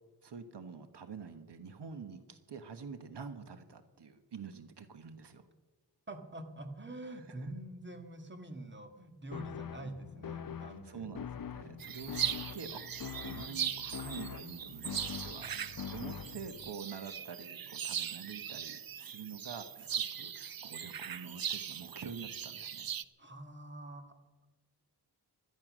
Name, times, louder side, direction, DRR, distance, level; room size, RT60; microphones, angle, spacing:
voice 1, 0.2-5.5 7.0-7.5 10.8-11.3 11.5-15.6 15.9-22.9, right 6 dB, 75° right, 9 dB, 1.3 m, -47 dB
voice 2, 6.1-11.1 23.2-24.2, right 1 dB, 25° right, 6 dB, 1.8 m, -46 dB
sound 1, 9.3-16.7, left 7 dB, 55° left, 0.7 m, -44 dB
sound 2, 11.8-23.0, right 8 dB, 55° right, 0.7 m, -40 dB
17.0 x 13.0 x 6.2 m, 1.2 s
wide cardioid pair, 120°, 42 cm